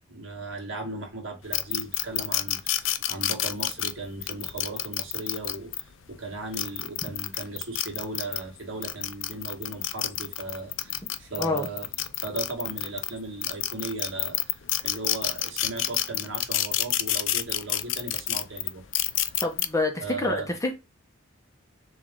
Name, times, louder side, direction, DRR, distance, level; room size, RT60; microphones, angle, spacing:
voice 1, 0.1-11.9 12.1-18.8 20.0-20.5, right 3 dB, 75° right, 1.5 m, -37 dB
sound 1, 1.5-5.8 6.4-8.4 8.8-13.1 13.4-19.7, left 13 dB, 70° left, 0.4 m, -28 dB
voice 2, 11.4-11.7 19.4-20.7, left 2 dB, 15° left, 0.8 m, -27 dB
3.6 x 3.1 x 3.6 m
head